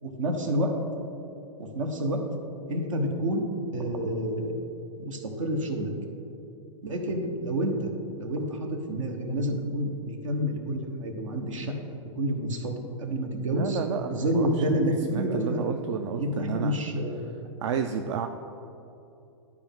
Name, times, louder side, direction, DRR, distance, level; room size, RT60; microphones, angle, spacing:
voice 1, 0.0-0.7 1.6-2.2 2.7-3.4 3.7-4.5 5.0-5.9 6.8-7.9 8.2-11.7 12.2-12.7 13.0-13.8 14.1-15.6 16.2-17.2, right 1 dB, 85° right, 3 dB, 1.1 m, -28 dB
voice 2, 13.5-14.8 15.1-16.8 17.6-18.3, right 7 dB, 65° right, 6 dB, 0.4 m, -31 dB
11.5 x 4.7 x 3.6 m, 2.8 s
hypercardioid pair, 120°, 16 cm